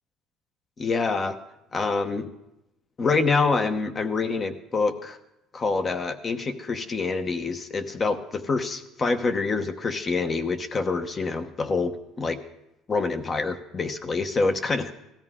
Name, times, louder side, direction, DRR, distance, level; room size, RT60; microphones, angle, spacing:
voice 1, 0.8-1.4 1.7-2.3 3.0-5.2 5.5-12.4 12.9-14.9, left 4 dB, 30° left, 10 dB, 0.9 m, -26 dB
18.0 x 13.0 x 3.7 m, 0.88 s
cardioid pair, 130°, 0 cm